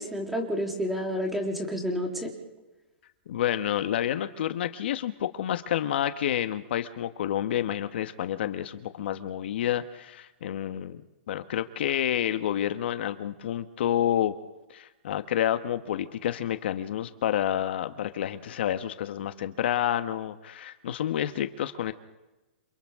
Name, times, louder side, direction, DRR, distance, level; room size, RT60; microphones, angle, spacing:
voice 1, 0.0-2.3, equal, ahead, 0 dB, 3.5 m, -30 dB
voice 2, 3.3-11.0 11.3-14.3 14.7-21.9, left 11 dB, 60° left, 9 dB, 1.2 m, -29 dB
29.5 x 27.5 x 3.7 m, 1.1 s
hypercardioid pair, 160°, 6 cm